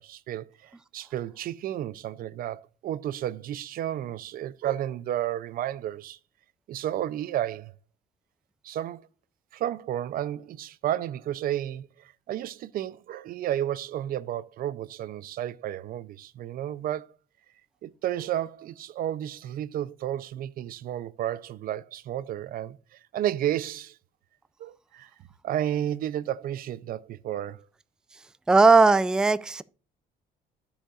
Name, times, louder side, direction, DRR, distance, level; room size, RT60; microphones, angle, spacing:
voice 1, 0.0-6.2 6.7-7.7 8.6-9.1 9.5-17.1 17.8-24.0 24.6-25.1 25.4-27.6, right 11 dB, 60° right, 0.5 m, -32 dB
voice 2, 28.5-29.6, right 3 dB, 5° right, 0.3 m, -18 dB
14.5 x 5.0 x 2.4 m
cardioid pair, 110°, 17 cm